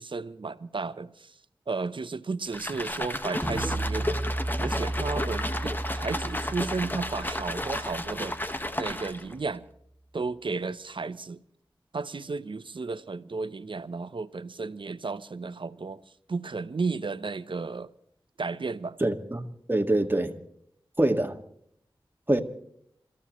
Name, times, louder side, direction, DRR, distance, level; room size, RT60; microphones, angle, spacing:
voice 1, 0.0-1.4 1.7-4.2 4.6-8.4 8.8-9.7 10.1-11.4 11.9-16.0 16.3-17.9 18.4-19.0, right 4 dB, 65° right, 0.8 m, -33 dB
sound 1, 2.5-9.3, left 1 dB, 20° left, 1.5 m, -33 dB
sound 2, 3.4-8.8, right 1 dB, 5° right, 2.6 m, -34 dB
voice 2, 19.0-20.3 21.0-21.3 22.3-22.4, right 1 dB, 25° right, 1.9 m, -25 dB
28.5 x 14.5 x 3.2 m
cardioid pair, 40°, 9 cm